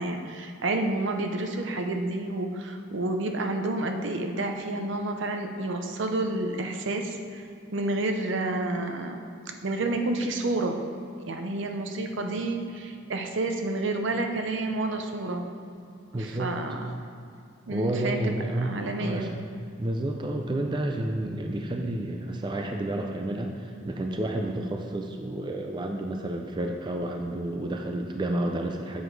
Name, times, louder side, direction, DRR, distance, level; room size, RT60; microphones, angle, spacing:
voice 1, 0.0-7.5 7.7-9.2 9.6-10.8 11.2-15.5 16.2-16.9 17.7-18.3 18.6-19.3, right 2 dB, 65° right, 5 dB, 0.7 m, -29 dB
voice 2, 16.1-16.6 17.7-19.4 19.8-29.0, right 1 dB, 25° right, 3 dB, 0.4 m, -30 dB
7.8 x 5.0 x 4.7 m, 2.4 s
head